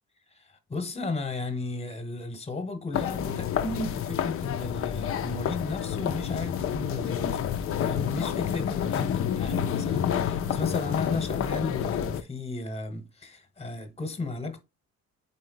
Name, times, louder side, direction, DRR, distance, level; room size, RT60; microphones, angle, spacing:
voice 1, 0.3-7.4 7.8-14.6, left 3 dB, 20° left, 1.0 m, -34 dB
sound 1, 2.9-12.2, left 9 dB, 50° left, 0.5 m, -29 dB
4.2 x 3.2 x 3.8 m
cardioid pair, 90°, 30 cm